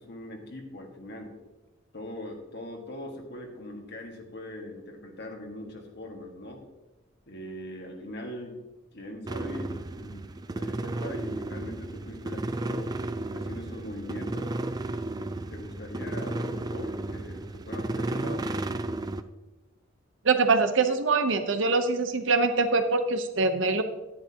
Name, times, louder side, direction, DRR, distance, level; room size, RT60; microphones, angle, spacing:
voice 1, 0.0-1.3 1.9-6.6 7.3-8.6 8.9-13.0 13.3-14.5 15.5-18.6, left 1 dB, 55° left, 2 dB, 1.7 m, -41 dB
sound 1, 9.3-19.2, right 2 dB, 20° right, 0.4 m, -33 dB
voice 2, 20.2-23.8, right 4 dB, 65° right, 8 dB, 0.9 m, -24 dB
11.5 x 10.5 x 2.9 m, 1.1 s
head